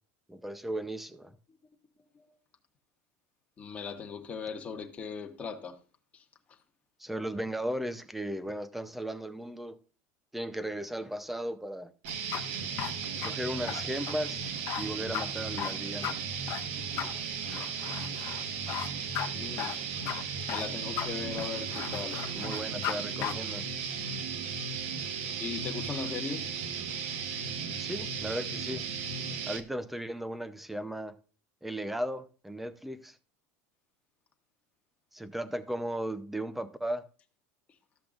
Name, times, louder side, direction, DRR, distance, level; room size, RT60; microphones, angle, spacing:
voice 1, 0.3-1.4 7.0-9.8 10.3-11.9 13.2-16.2 22.3-23.7 27.8-28.8 29.5-31.2 31.6-33.2 35.1-37.1, right 1 dB, ahead, 0.6 m, -36 dB
voice 2, 3.6-5.8 6.1-6.2 19.3-19.8 20.5-22.2 25.4-26.5, left 5 dB, 20° left, 1.2 m, -38 dB
sound 1, 12.0-29.6, right 6 dB, 70° right, 1.4 m, -36 dB
sound 2, 12.1-23.0 23.2-23.3, left 13 dB, 45° left, 1.0 m, -37 dB
13.5 x 7.6 x 2.5 m
supercardioid pair, 160°, 7 cm